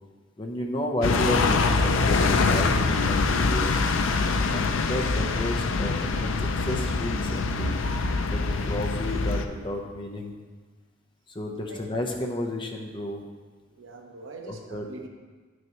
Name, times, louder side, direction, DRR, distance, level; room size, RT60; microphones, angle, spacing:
voice 1, 0.4-2.7 3.1-3.7 4.5-7.8 8.3-10.3 11.3-13.2 14.4-14.9, left 1 dB, 25° left, 1 dB, 0.7 m, -32 dB
sound 1, 1.0-9.5, left 3 dB, 70° left, 0.5 m, -24 dB
voice 2, 13.7-15.1, right 3 dB, 65° right, 2 dB, 0.9 m, -43 dB
9.8 x 6.3 x 3.0 m, 1.4 s
head